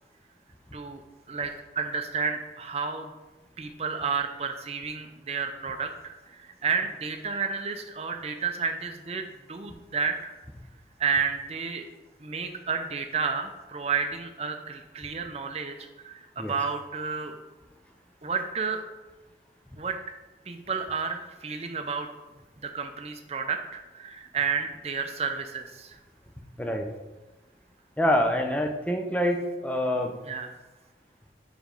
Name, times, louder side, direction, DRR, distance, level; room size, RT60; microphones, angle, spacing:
voice 1, 1.3-3.1 3.6-10.3 11.0-11.8 12.2-17.3 18.2-18.8 19.8-20.0 20.5-22.1 22.6-26.0 30.2-30.5, right 5 dB, 35° right, 5 dB, 0.6 m, -31 dB
voice 2, 28.0-30.2, equal, 5° left, 3 dB, 0.6 m, -26 dB
5.1 x 5.0 x 5.2 m, 1.2 s
head